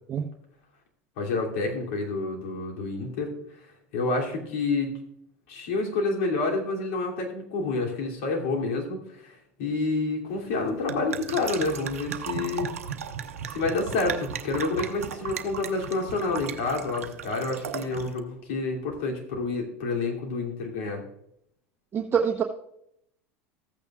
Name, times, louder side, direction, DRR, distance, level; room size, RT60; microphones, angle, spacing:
voice 1, 1.2-3.3 3.9-5.0 5.5-12.7 13.4-21.0, left 3 dB, 70° left, -1 dB, 2.9 m, -29 dB
sound 1, 10.3-18.2, right 8 dB, 85° right, 0.8 m, -36 dB
voice 2, 21.9-22.4, right 7 dB, 30° right, 0 dB, 1.0 m, -24 dB
14.5 x 8.7 x 2.5 m, 0.74 s
hypercardioid pair, 85°, 8 cm